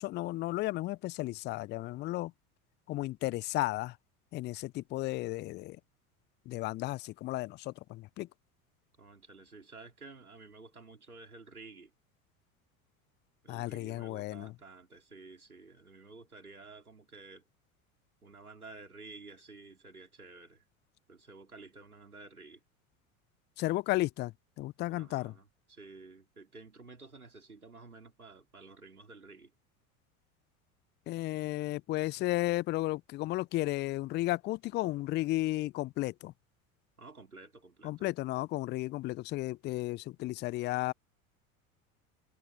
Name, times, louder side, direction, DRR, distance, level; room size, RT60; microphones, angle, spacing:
voice 1, 0.0-2.3 2.9-4.0 4.3-5.8 6.5-8.3 13.5-14.5 23.6-25.3 31.1-36.3 37.8-40.9, left 18 dB, 25° left, 0.4 m, -34 dB
voice 2, 9.0-11.9 13.4-17.4 18.2-20.6 21.1-22.6 24.9-29.5 37.0-38.1, right 3 dB, 90° right, 4.2 m, -52 dB
figure-of-eight pair, 75°, 43 cm